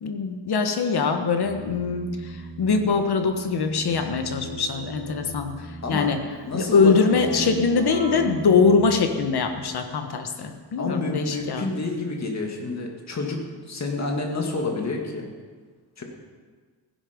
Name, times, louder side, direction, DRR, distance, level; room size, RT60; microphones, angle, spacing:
voice 1, 0.0-6.2 6.5-11.7, left 5 dB, 65° left, 6 dB, 1.4 m, -23 dB
Keyboard (musical), 1.4-9.8, right 1 dB, 75° right, 3.0 m, -38 dB
voice 2, 6.5-7.0 7.3-7.5 10.8-15.3 16.0-16.1, left 3 dB, 40° left, 1 dB, 2.1 m, -29 dB
16.0 x 10.5 x 5.2 m, 1.5 s
wide cardioid pair, 180°, 41 cm